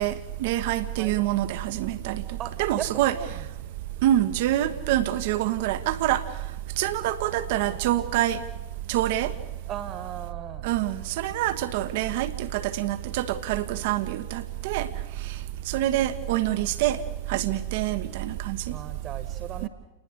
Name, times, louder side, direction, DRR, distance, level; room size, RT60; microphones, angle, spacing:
voice 1, 0.0-2.2 2.6-3.2 4.0-6.2 6.8-8.4 8.9-9.3 10.6-14.9 15.7-17.0 17.3-18.6 19.6-19.7, right 13 dB, 50° right, 12 dB, 1.2 m, -26 dB
voice 2, 2.4-3.4 9.7-10.7 18.7-19.7, right 10 dB, 35° right, 11 dB, 1.6 m, -37 dB
29.5 x 20.5 x 6.5 m, 1.1 s
figure-of-eight pair, 90°, 0 cm